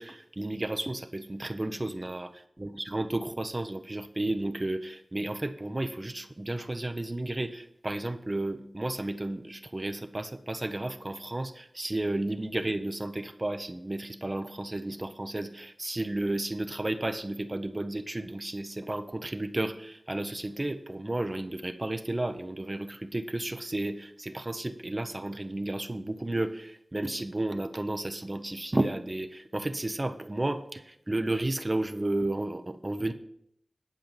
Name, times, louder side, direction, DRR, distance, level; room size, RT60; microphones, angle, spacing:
voice 1, 0.0-33.1, right 2 dB, 35° right, 8 dB, 0.8 m, -32 dB
10.5 x 5.1 x 7.4 m, 0.71 s
wide cardioid pair, 45°, 0 cm